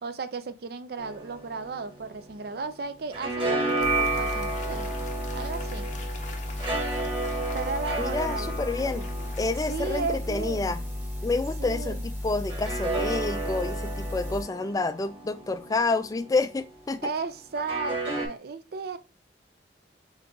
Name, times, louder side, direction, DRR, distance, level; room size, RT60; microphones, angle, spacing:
voice 1, 0.0-4.9 5.3-5.9 7.5-8.6 9.7-10.8 11.6-12.1 17.0-19.0, right 4 dB, 60° right, 0.5 m, -34 dB
sound 1, 1.0-2.7 2.9-11.6 12.5-16.6 17.5-18.3, right 2 dB, 30° right, 1.5 m, -33 dB
Applause / Crowd, 3.1-10.9, left 5 dB, 45° left, 0.7 m, -47 dB
sound 2, 3.8-14.4, left 1 dB, 10° right, 1.1 m, -34 dB
voice 2, 8.0-9.0 9.4-10.8 11.2-17.0, left 3 dB, 20° left, 0.3 m, -28 dB
3.9 x 3.6 x 3.8 m
head